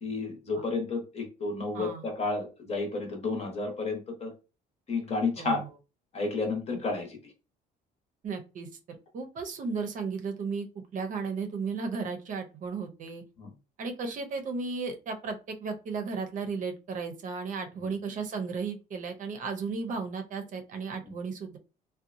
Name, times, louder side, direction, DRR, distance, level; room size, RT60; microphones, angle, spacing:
voice 1, 0.0-4.3 4.9-5.6 6.1-7.2 13.4-13.5, left 3 dB, 40° left, 3 dB, 1.0 m, -31 dB
voice 2, 1.7-2.1 5.4-5.7 8.2-10.7 10.9-13.2 13.8-21.6, right 4 dB, 50° right, 6 dB, 0.6 m, -35 dB
2.7 x 2.2 x 2.5 m, 0.31 s
cardioid pair, 110°, 17 cm